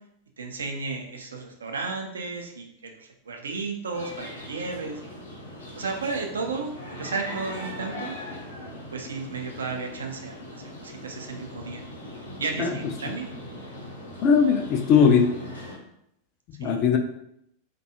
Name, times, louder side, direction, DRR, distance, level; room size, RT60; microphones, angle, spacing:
voice 1, 0.4-5.0 5.8-6.7 7.0-8.2 8.9-11.8 12.4-13.3 16.6-16.9, right 4 dB, 70° right, 4 dB, 0.4 m, -33 dB
sound 1, 3.9-15.8, left 1 dB, 70° left, 0.7 m, -40 dB
voice 2, 14.2-15.3 16.6-17.0, left 6 dB, 40° left, 4 dB, 0.3 m, -19 dB
2.6 x 2.2 x 2.7 m, 0.77 s
figure-of-eight pair, 90°, 0 cm